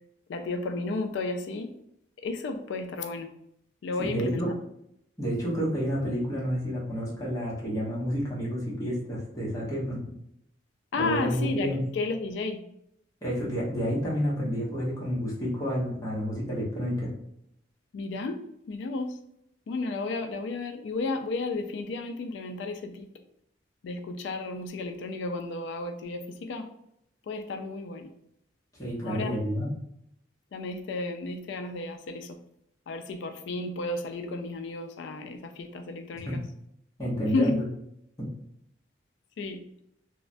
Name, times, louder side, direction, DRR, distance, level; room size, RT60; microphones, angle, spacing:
voice 1, 0.3-1.7 2.2-3.3 3.8-4.5 10.9-12.6 17.9-19.2 19.7-23.1 23.8-26.7 27.3-28.1 29.0-29.4 30.5-32.4 32.9-36.4 37.3-37.6 39.4-39.6, left 3 dB, 70° left, 6 dB, 0.3 m, -32 dB
voice 2, 4.0-4.5 5.2-10.1 11.0-11.8 13.2-17.1 28.8-29.7 36.2-36.4 37.0-37.6 38.2-38.3, equal, 15° left, -6 dB, 0.8 m, -30 dB
3.1 x 2.1 x 2.5 m, 0.75 s
head